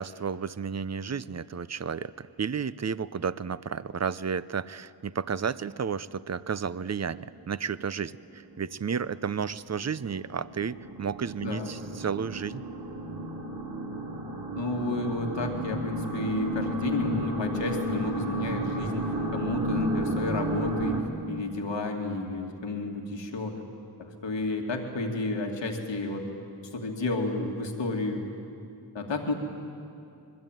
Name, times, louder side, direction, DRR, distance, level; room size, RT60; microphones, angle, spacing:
voice 1, 0.0-12.6, right 6 dB, 40° right, 17 dB, 0.7 m, -32 dB
sound 1, 6.4-7.4 7.8-7.9 8.4-8.5 8.8-21.0, right 1 dB, 65° right, 3.1 m, -33 dB
voice 2, 14.6-23.6 24.0-26.3 26.7-28.2 28.9-29.3, left 2 dB, 90° left, 2 dB, 2.6 m, -31 dB
25.0 x 22.0 x 9.1 m, 2.5 s
cardioid pair, 50°, 43 cm